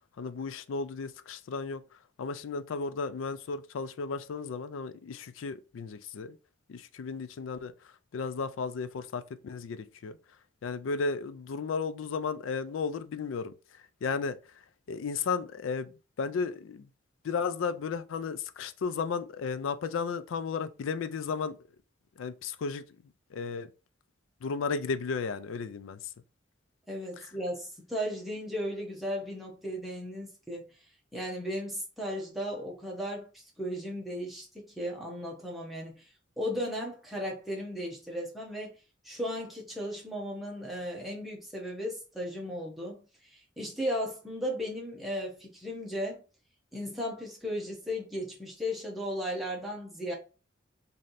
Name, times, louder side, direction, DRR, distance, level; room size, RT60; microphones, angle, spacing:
voice 1, 0.2-1.8 2.2-6.4 6.7-7.7 8.1-10.2 10.6-13.5 14.0-14.4 14.9-15.9 16.2-16.9 17.2-21.6 22.2-22.9 23.3-23.7 24.4-26.0 27.2-27.3, left 5 dB, 80° left, 0.4 m, -34 dB
voice 2, 26.9-30.6 31.1-33.3 33.6-35.9 36.4-38.7 39.0-46.2 46.7-50.1, equal, ahead, 0.9 m, -35 dB
3.2 x 2.7 x 3.9 m
head